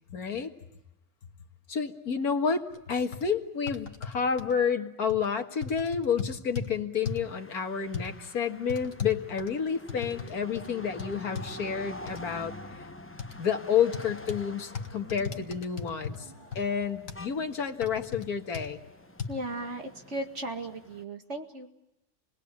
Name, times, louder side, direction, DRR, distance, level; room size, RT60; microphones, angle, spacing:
voice 1, 0.1-0.5 1.7-12.9 13.4-16.3 16.6-18.8, left 6 dB, 75° left, 5 dB, 2.2 m, -30 dB
sound 1, 2.7-2.8 3.1-3.2 3.7-4.5 5.1-5.3 5.6-6.7 7.0-7.3 7.9-8.1 8.7-10.3 10.5-10.7 11.0-11.5 12.1-12.2 13.2-13.3 13.9-14.4 14.7-16.2 16.5-16.6 17.1-17.2 17.8-18.2 18.5-18.7 19.2-19.3, left 6 dB, 60° left, 2.0 m, -36 dB
sound 2, 7.0-21.0, left 1 dB, 10° left, 0.8 m, -47 dB
sound 3, 13.3-18.3, equal, 90° right, 4.5 m, -55 dB
voice 2, 19.3-21.7, right 1 dB, 50° right, 4 dB, 2.4 m, -36 dB
28.5 x 20.5 x 8.4 m, 0.91 s
omnidirectional pair, 1.6 m